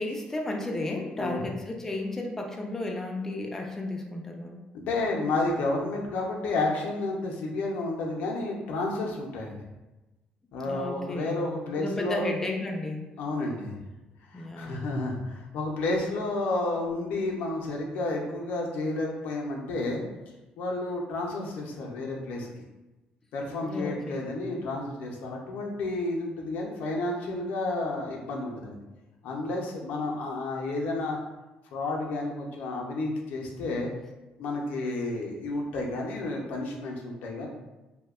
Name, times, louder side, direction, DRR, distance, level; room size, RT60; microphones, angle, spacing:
voice 1, 0.0-4.6 10.7-11.4 11.8-13.0 14.3-14.8 23.6-24.2, left 2 dB, 15° left, 1 dB, 0.3 m, -33 dB
voice 2, 4.7-9.6 10.5-12.3 13.2-13.7 14.3-20.0 20.6-22.5 23.3-28.8 29.2-31.2 31.7-33.9 34.4-37.5, left 2 dB, 80° left, 0 dB, 0.5 m, -31 dB
2.6 x 2.1 x 2.3 m, 1.1 s
cardioid pair, 125°, 3 cm